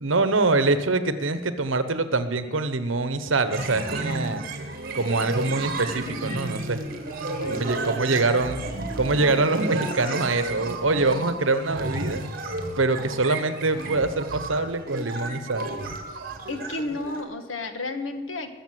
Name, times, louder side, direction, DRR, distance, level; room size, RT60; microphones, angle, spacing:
voice 1, 0.0-4.4 4.9-6.8 7.4-8.6 9.0-12.2 12.8-15.8, right 3 dB, 80° right, 11 dB, 1.1 m, -24 dB
sound 1, 3.5-17.2, right 2 dB, 50° right, 1.9 m, -32 dB
voice 2, 7.4-7.9 16.5-18.5, left 2 dB, 90° left, 7 dB, 1.5 m, -32 dB
21.0 x 7.1 x 7.7 m, 1.3 s
head